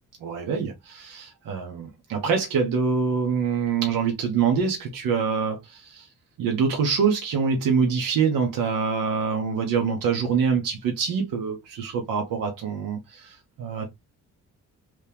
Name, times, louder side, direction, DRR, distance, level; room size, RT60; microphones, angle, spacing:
voice 1, 0.2-6.1 6.4-13.9, right 6 dB, 85° right, 1.0 m, -25 dB
3.2 x 2.8 x 3.4 m
cardioid pair, 115°, 32 cm